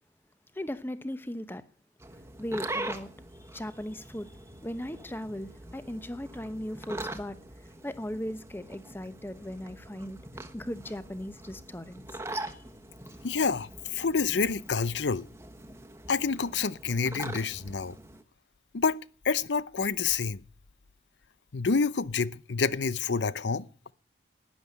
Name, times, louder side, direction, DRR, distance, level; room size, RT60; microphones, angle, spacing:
voice 1, 0.5-1.6 2.4-3.1 3.4-7.4 7.8-10.2 10.5-12.6, equal, 10° left, 0.9 m, -38 dB
sound 1, 2.0-18.2, right 1 dB, 15° right, 1.2 m, -42 dB
voice 2, 13.2-15.3 16.1-18.0 18.7-19.0 19.2-20.4 21.5-23.7, left 5 dB, 85° left, 0.7 m, -28 dB
12.5 x 10.0 x 9.4 m
head